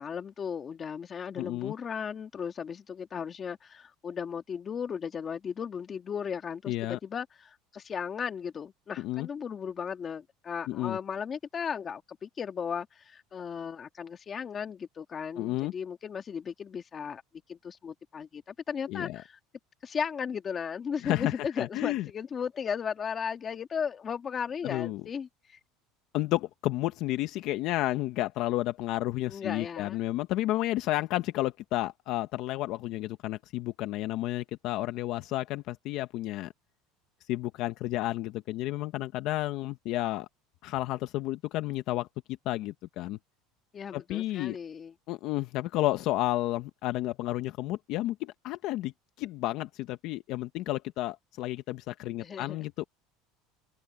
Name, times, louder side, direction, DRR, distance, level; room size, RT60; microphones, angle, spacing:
voice 1, 0.0-17.2 17.5-19.4 19.8-25.6 29.3-30.0 43.7-44.9 52.2-52.6, left 7 dB, 25° left, 2.1 m, -36 dB
voice 2, 1.4-1.7 6.7-7.0 9.0-9.3 10.7-11.0 15.4-15.7 18.9-19.2 21.0-22.1 24.6-25.0 26.1-36.5 37.3-40.3 40.6-42.1 42.4-43.2 43.9-44.6 45.1-48.9 49.2-52.9, left 16 dB, 55° left, 0.9 m, -31 dB
open air
cardioid pair, 150°, 0 cm